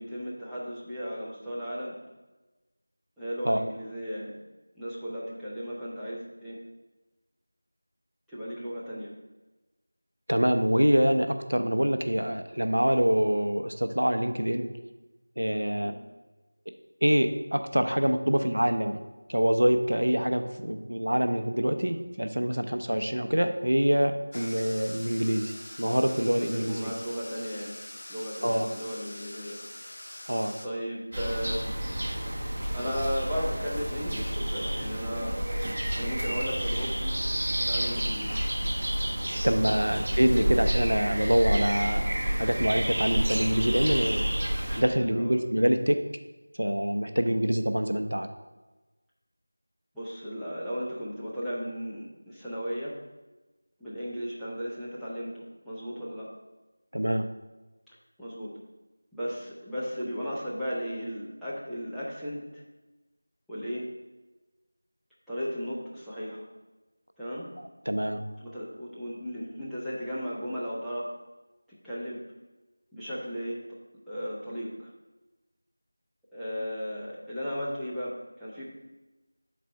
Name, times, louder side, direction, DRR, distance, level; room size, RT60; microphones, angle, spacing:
voice 1, 0.0-2.0 3.2-4.4 4.7-6.6 8.3-9.1 15.8-16.0 26.3-27.8 28.1-29.6 29.8-29.9 30.6-31.7 32.6-35.4 36.0-37.2 37.7-38.4 39.6-39.8 44.9-45.4 47.2-47.3 49.9-53.0 53.8-56.3 57.9-58.5 59.1-62.6 63.5-63.9 65.3-66.4 67.2-67.5 68.4-71.2 71.7-72.3 72.9-73.8 74.1-74.9 76.3-78.6, equal, ahead, -15 dB, 0.6 m, -35 dB
voice 2, 10.3-14.7 15.4-15.9 17.0-19.0 19.3-26.9 28.4-28.7 30.3-30.6 39.4-42.1 42.4-46.1 46.6-48.3 56.9-57.3 67.9-68.2, equal, 80° right, 8 dB, 0.6 m, -25 dB
sound 1, 24.3-30.7, left 1 dB, 45° left, 0.7 m, -44 dB
sound 2, 31.1-44.8, right 1 dB, 40° right, 1.0 m, -29 dB
7.1 x 4.2 x 4.5 m, 1.1 s
figure-of-eight pair, 170°, 0 cm